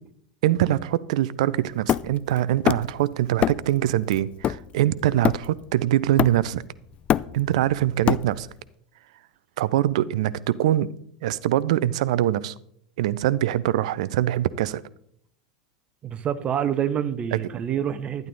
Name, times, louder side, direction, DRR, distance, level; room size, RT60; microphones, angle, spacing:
voice 1, 0.4-6.6 7.3-8.5 9.6-10.9 11.2-12.5 13.0-14.8 17.3-17.4, right 13 dB, 60° right, 19 dB, 0.5 m, -23 dB
Hammer, 1.9-3.0 3.4-3.8 4.1-5.7 6.2-6.6 6.9-8.6, left 11 dB, 30° left, 0.3 m, -25 dB
voice 2, 16.0-18.3, right 9 dB, 30° right, 14 dB, 0.9 m, -27 dB
12.0 x 10.5 x 4.0 m, 0.68 s
figure-of-eight pair, 85°, 4 cm